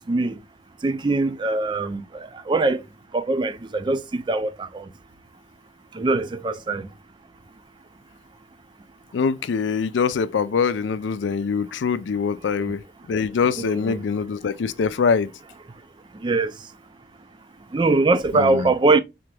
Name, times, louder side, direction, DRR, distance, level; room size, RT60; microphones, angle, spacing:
voice 1, 0.1-0.4 0.8-2.8 3.1-4.8 6.0-6.9 12.6-12.7 13.6-14.0 16.2-16.5 17.7-19.0, right 3 dB, 25° right, 0.3 m, -22 dB
voice 2, 9.1-12.8 13.1-15.3 18.3-18.7, left 5 dB, 85° left, 0.4 m, -23 dB
3.8 x 3.3 x 3.3 m
head